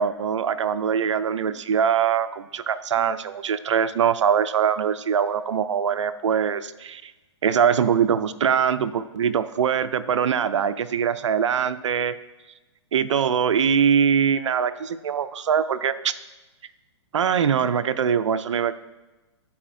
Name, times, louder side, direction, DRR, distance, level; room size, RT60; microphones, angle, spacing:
voice 1, 0.0-7.1 7.4-12.2 12.9-16.1 17.1-18.7, right 7 dB, 85° right, 13 dB, 0.4 m, -22 dB
11.0 x 4.2 x 2.5 m, 1.1 s
hypercardioid pair, 140°, 15 cm